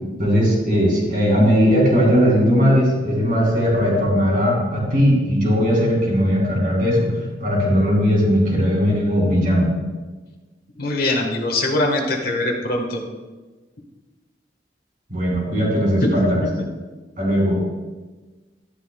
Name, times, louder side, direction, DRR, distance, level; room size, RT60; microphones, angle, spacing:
voice 1, 0.2-7.1 7.4-9.7 15.1-16.4 17.2-17.6, equal, 45° right, -3 dB, 3.3 m, -18 dB
voice 2, 10.8-13.0 16.4-16.5, left 2 dB, 50° left, 2 dB, 1.5 m, -22 dB
12.5 x 11.0 x 2.3 m, 1.3 s
head